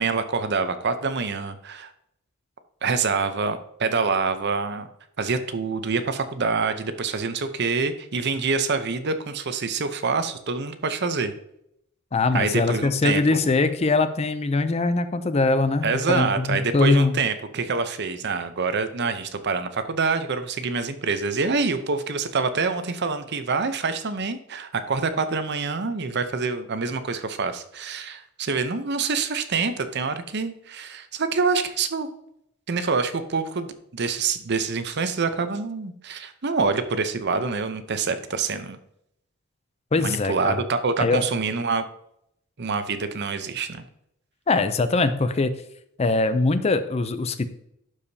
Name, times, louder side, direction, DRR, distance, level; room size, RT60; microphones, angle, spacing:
voice 1, 0.0-1.9 2.8-4.9 5.2-11.3 12.3-13.4 15.8-32.1 32.7-38.8 40.0-41.8 42.6-43.8, right 4 dB, 50° right, 10 dB, 0.7 m, -26 dB
voice 2, 12.1-17.1 39.9-40.6 41.0-41.2 44.5-45.6 46.0-47.5, left 3 dB, 30° left, 11 dB, 0.5 m, -22 dB
12.0 x 4.9 x 2.8 m, 0.75 s
head